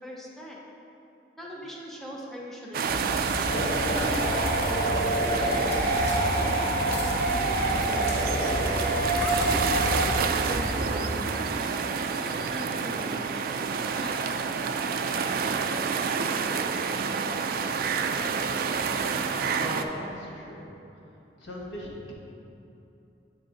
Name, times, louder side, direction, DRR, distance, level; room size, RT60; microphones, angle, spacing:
voice 1, 0.0-0.6 1.4-3.0 3.8-8.3 9.1-14.2, equal, ahead, -4 dB, 0.6 m, -41 dB
sound 1, 2.7-19.8, right 5 dB, 55° right, 0.3 m, -29 dB
sound 2, 2.9-10.9, equal, 40° left, 1.0 m, -33 dB
sound 3, 3.5-10.1, right 1 dB, 60° left, 0.9 m, -28 dB
voice 2, 19.5-20.8 21.4-22.1, left 1 dB, 85° left, -3 dB, 1.3 m, -38 dB
8.7 x 3.8 x 3.8 m, 2.9 s
head